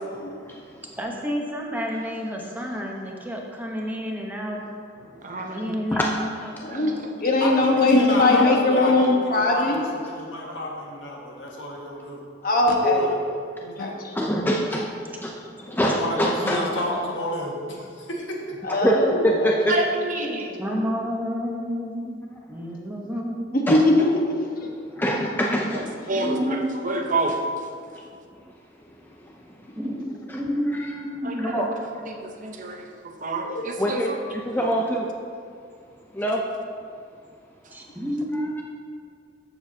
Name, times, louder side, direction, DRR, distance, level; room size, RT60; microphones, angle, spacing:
voice 1, 0.3-0.8 5.4-5.5 5.9-6.1 14.1-16.6 18.7-19.7 23.7-23.9 25.0-26.2 28.0-28.1 28.9-29.8 30.3-30.4 30.7-31.0 31.4-31.7 33.8-35.1 36.1-36.4 38.3-38.5, equal, 10° left, -1 dB, 0.5 m, -26 dB
voice 2, 1.0-4.6 5.5-7.0 20.6-22.2 22.5-23.6 26.1-27.0 29.8-31.5 37.7-38.6, equal, 10° right, -1 dB, 0.9 m, -30 dB
voice 3, 5.2-5.8 19.7-20.5 26.1-26.3 26.8-27.4 31.2-31.7 32.4-32.8 33.2-34.0, right 2 dB, 45° right, 2 dB, 0.8 m, -27 dB
voice 4, 6.6-9.8 12.4-13.0 13.8-13.9 18.6-19.1 19.4-19.5 23.8-24.3 24.6-24.7 26.1-26.2 33.4-33.6, left 2 dB, 50° left, 0 dB, 1.2 m, -20 dB
voice 5, 7.4-12.2 12.8-13.2 13.6-13.9 15.7-18.6, left 1 dB, 85° left, -2 dB, 1.6 m, -30 dB
13.5 x 7.1 x 2.8 m, 2.3 s
head